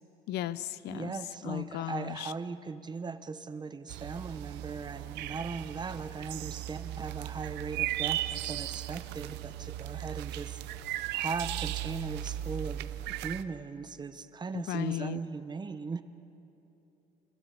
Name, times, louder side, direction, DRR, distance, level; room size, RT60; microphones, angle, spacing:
voice 1, 0.3-1.1 1.4-2.3 14.5-15.2, left 14 dB, 75° left, 17 dB, 0.6 m, -35 dB
voice 2, 0.8-10.6 11.1-16.0, right 4 dB, 25° right, 11 dB, 1.0 m, -38 dB
sound 1, 3.9-13.4, right 14 dB, 90° right, 0.7 m, -37 dB
26.5 x 16.0 x 7.1 m, 3.0 s
cardioid pair, 110°, 17 cm